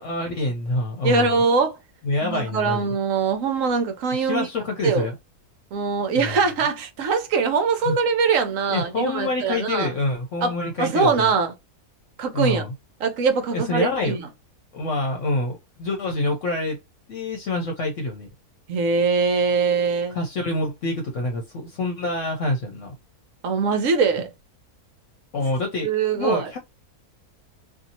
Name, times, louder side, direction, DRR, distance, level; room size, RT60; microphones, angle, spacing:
voice 1, 0.0-1.4 2.0-2.9 4.1-5.1 6.2-6.4 7.8-8.0 8.7-11.3 12.3-12.7 13.5-14.2 14.7-16.8 17.1-18.3 20.1-22.9 25.3-26.6, left 2 dB, 60° left, 0.9 m, -26 dB
voice 2, 1.0-1.8 2.2-4.5 4.8-5.1 5.7-9.9 10.4-11.5 12.2-12.6 13.0-14.3 18.7-20.2 23.4-24.3 25.8-26.5, right 5 dB, 65° right, 1.0 m, -22 dB
2.7 x 2.5 x 2.7 m
omnidirectional pair, 1.6 m